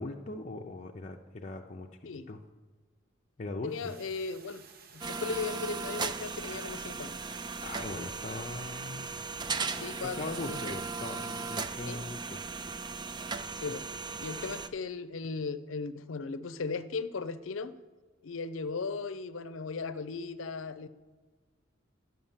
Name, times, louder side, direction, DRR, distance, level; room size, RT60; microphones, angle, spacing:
voice 1, 0.0-2.4 3.4-3.9 7.6-9.1 9.8-12.4, left 2 dB, 35° left, 0.6 m, -40 dB
voice 2, 3.6-4.6 4.9-7.2 9.8-10.8 11.9-12.0 13.5-13.9 14.2-17.8 18.2-20.9, left 4 dB, 90° left, 0.6 m, -37 dB
sound 1, 3.7-10.6, right 6 dB, 50° right, 0.8 m, -55 dB
sound 2, 5.0-14.7, right 4 dB, 20° right, 0.4 m, -37 dB
11.0 x 5.9 x 7.2 m
head